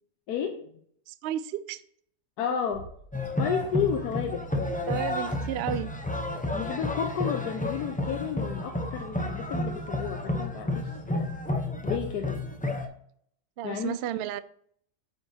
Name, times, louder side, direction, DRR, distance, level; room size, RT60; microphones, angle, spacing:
voice 1, 0.3-0.7 2.4-2.9 3.4-4.5 6.5-11.3 11.8-12.4 13.6-13.9, left 7 dB, 85° left, 3 dB, 1.2 m, -32 dB
voice 2, 1.1-1.8 4.9-5.9 13.6-14.4, right 11 dB, 80° right, 13 dB, 0.5 m, -32 dB
Bass drum, 2.7-4.1, left 1 dB, 70° left, 2.3 m, -51 dB
sound 1, 3.1-12.9, left 2 dB, 10° left, 0.4 m, -31 dB
8.9 x 5.9 x 2.8 m, 0.65 s
omnidirectional pair, 1.6 m